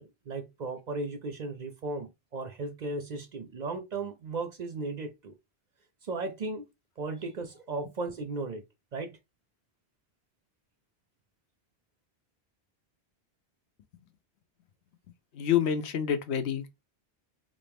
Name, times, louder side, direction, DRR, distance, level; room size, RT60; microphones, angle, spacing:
voice 1, 0.0-5.3 6.0-6.7 7.0-8.6 8.9-9.2, right 3 dB, 55° right, 0.5 m, -36 dB
voice 2, 15.3-16.8, left 9 dB, 85° left, 0.9 m, -28 dB
3.4 x 2.6 x 3.4 m
omnidirectional pair, 1.1 m